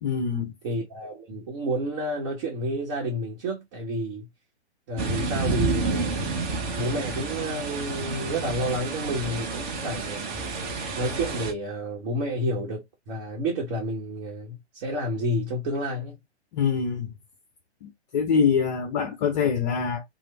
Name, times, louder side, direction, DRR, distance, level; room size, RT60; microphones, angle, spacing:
voice 1, 0.0-0.5 16.5-17.1 17.8-20.0, left 6 dB, 40° left, 0.6 m, -24 dB
voice 2, 0.6-4.3 4.9-6.3 6.7-10.4 11.0-16.1, equal, 35° right, 0.9 m, -30 dB
sound 1, 5.0-11.5, right 3 dB, 20° right, 0.5 m, -30 dB
3.0 x 2.0 x 3.0 m
figure-of-eight pair, 125°, 34 cm